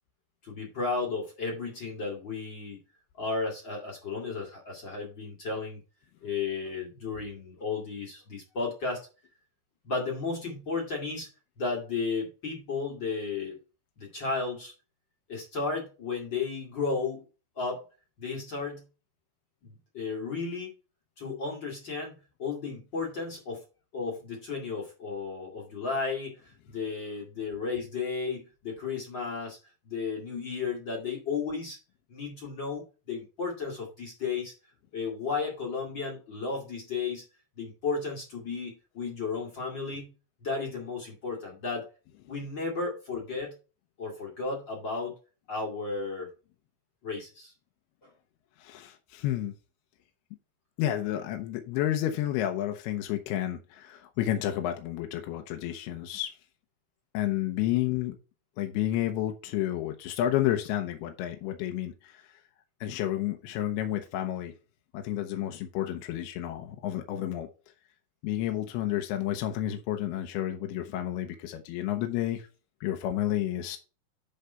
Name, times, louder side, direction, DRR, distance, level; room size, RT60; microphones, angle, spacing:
voice 1, 0.4-2.8 3.2-5.8 6.2-9.1 9.8-11.3 11.6-13.6 14.0-14.7 15.3-17.2 17.6-17.8 18.2-18.8 19.6-20.7 21.2-22.1 22.4-23.6 23.9-29.6 29.8-31.8 32.1-34.5 34.9-37.2 37.6-40.1 40.4-41.9 42.3-43.6 44.0-45.1 45.5-46.3 47.0-47.5 48.0-48.1, left 4 dB, 40° left, -1 dB, 1.7 m, -34 dB
voice 2, 48.6-49.5 50.8-56.3 57.1-58.2 58.6-62.2 62.8-64.5 64.9-67.5 68.2-72.5 72.8-73.8, left 12 dB, 75° left, 5 dB, 2.5 m, -30 dB
10.5 x 4.0 x 4.3 m, 0.33 s
omnidirectional pair, 5.1 m